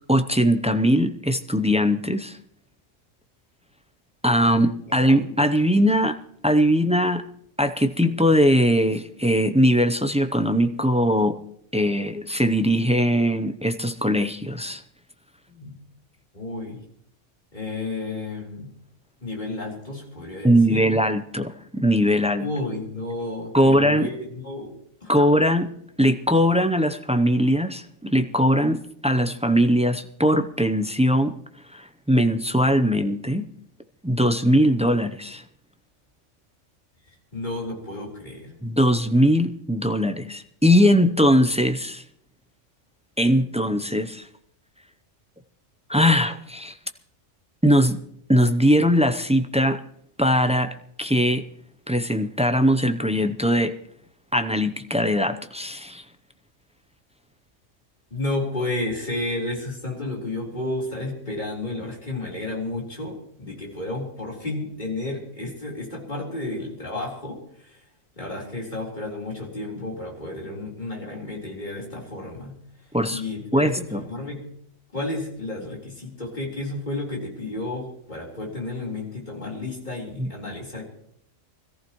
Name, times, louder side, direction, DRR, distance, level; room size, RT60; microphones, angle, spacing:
voice 1, 0.1-2.4 4.2-6.2 6.4-7.2 7.6-11.4 11.7-14.8 20.4-22.5 23.5-24.1 25.1-25.7 26.0-31.3 31.7-33.5 34.0-35.4 38.6-42.0 43.2-44.3 45.9-46.8 47.6-48.0 48.3-49.8 50.2-50.7 51.0-51.4 51.9-53.7 54.3-56.0 72.9-73.2 73.5-74.0 80.2-80.3, equal, 10° right, 8 dB, 0.4 m, -20 dB
voice 2, 4.5-5.3 15.5-15.7 16.3-16.8 17.5-18.7 19.2-20.9 22.4-24.7 25.0-25.4 37.1-38.6 58.1-67.8 68.2-72.5 73.1-74.4 74.9-80.9, left 2 dB, 35° left, -3 dB, 4.1 m, -32 dB
24.5 x 14.5 x 3.1 m, 0.70 s
omnidirectional pair, 1.3 m